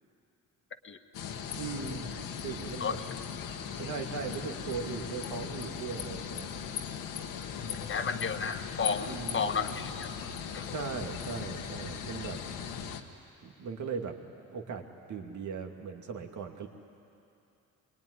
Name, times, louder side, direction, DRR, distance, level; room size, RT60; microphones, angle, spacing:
sound 1, 1.1-13.0, left 7 dB, 80° left, 1.6 m, -38 dB
voice 1, 1.6-2.1 2.4-3.0 3.8-6.5 9.0-9.5 10.7-12.4 13.4-14.1 14.5-14.8 15.1-16.7, right 5 dB, 60° right, 3 dB, 2.5 m, -38 dB
voice 2, 7.9-10.1 10.5-10.7, left 5 dB, 35° left, 8 dB, 1.5 m, -32 dB
24.0 x 21.0 x 9.9 m, 2.7 s
cardioid pair, 85°, 33 cm